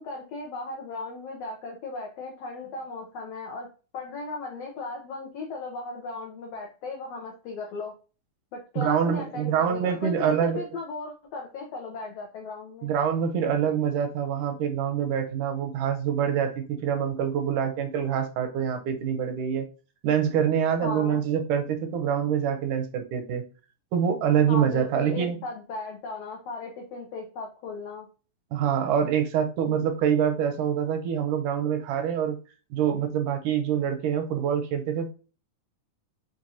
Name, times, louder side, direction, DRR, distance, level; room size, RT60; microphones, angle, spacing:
voice 1, 0.0-3.7 3.9-7.9 8.5-12.9 20.8-21.2 24.4-28.1, left 3 dB, 85° left, 0 dB, 1.4 m, -36 dB
voice 2, 8.8-10.6 12.8-19.7 20.0-23.4 23.9-25.4 28.5-32.4 32.7-35.1, right 8 dB, 80° right, 7 dB, 2.0 m, -25 dB
5.9 x 2.5 x 2.7 m, 0.35 s
omnidirectional pair, 3.8 m